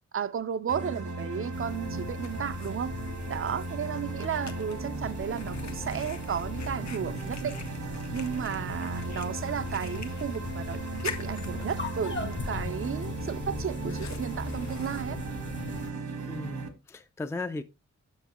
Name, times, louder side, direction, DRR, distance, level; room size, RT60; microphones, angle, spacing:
voice 1, 0.1-2.9 3.3-7.6 8.1-15.2, right 7 dB, 50° right, 0.5 m, -33 dB
sound 1, 0.7-16.7, right 3 dB, 75° right, 1.3 m, -37 dB
sound 2, 1.5-15.9, left 4 dB, 40° left, 0.8 m, -40 dB
Fire, 2.1-16.5, left 6 dB, 70° left, 0.9 m, -48 dB
voice 2, 16.3-17.6, left 3 dB, 10° left, 0.4 m, -36 dB
7.2 x 6.3 x 2.9 m
wide cardioid pair, 130°, 29 cm